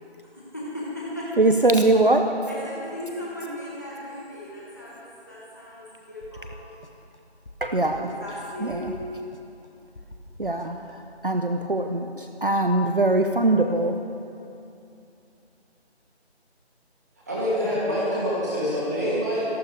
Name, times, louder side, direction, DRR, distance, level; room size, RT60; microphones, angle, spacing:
voice 1, 0.5-1.3 2.5-6.5 7.8-9.0, left 1 dB, 15° left, -7 dB, 1.4 m, -37 dB
voice 2, 1.4-2.3 7.6-8.1 8.6-8.9 10.4-14.0, right 2 dB, 50° right, 5 dB, 0.7 m, -22 dB
sound 1, 6.2-7.2 7.5-8.4 8.7-9.7 10.0-10.9, left 1 dB, 85° left, 1.4 m, -45 dB
voice 3, 17.3-19.4, equal, 15° right, -9 dB, 2.6 m, -25 dB
26.5 x 11.5 x 3.4 m, 2.7 s
figure-of-eight pair, 170°, 34 cm